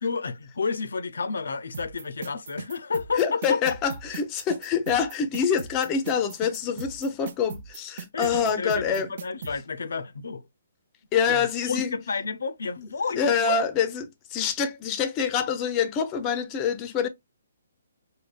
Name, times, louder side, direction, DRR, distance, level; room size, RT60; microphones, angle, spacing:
voice 1, 0.0-3.6 8.1-10.4 11.3-13.6, left 5 dB, 80° left, 0.5 m, -31 dB
sound 1, 1.7-9.5, right 6 dB, 50° right, 0.6 m, -38 dB
voice 2, 3.2-9.1 11.1-11.9 13.2-14.0 14.3-17.1, left 6 dB, 20° left, 0.6 m, -26 dB
4.9 x 2.2 x 2.3 m
hypercardioid pair, 160°, 0 cm